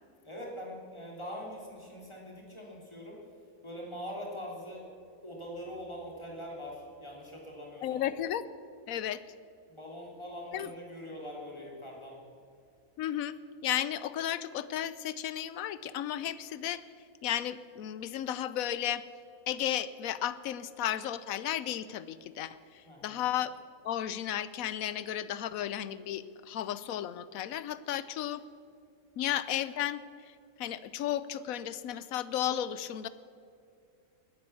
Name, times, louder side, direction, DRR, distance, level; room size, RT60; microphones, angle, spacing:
voice 1, 0.2-3.2 3.6-4.9 5.2-8.0 9.7-12.2 22.8-23.2, equal, 20° left, -2 dB, 3.3 m, -43 dB
voice 2, 7.8-8.4 8.9-9.2 10.5-10.7 13.0-13.3 13.6-16.8 17.2-19.0 19.5-23.5 23.8-28.4 29.2-33.1, left 11 dB, 80° left, 16 dB, 1.1 m, -34 dB
19.5 x 9.5 x 7.1 m, 2.4 s
omnidirectional pair, 1.5 m